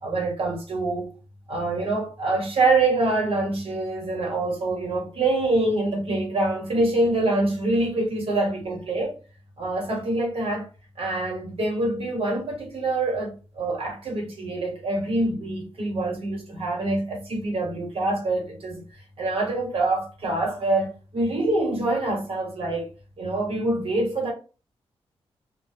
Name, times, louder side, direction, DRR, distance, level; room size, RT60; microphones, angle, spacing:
voice 1, 0.0-1.1 1.5-9.2 9.6-10.6 11.0-18.8 19.2-22.9 23.2-24.3, right 2 dB, 65° right, 1.1 m, -25 dB
2.2 x 2.0 x 3.1 m
cardioid pair, 85°, 11 cm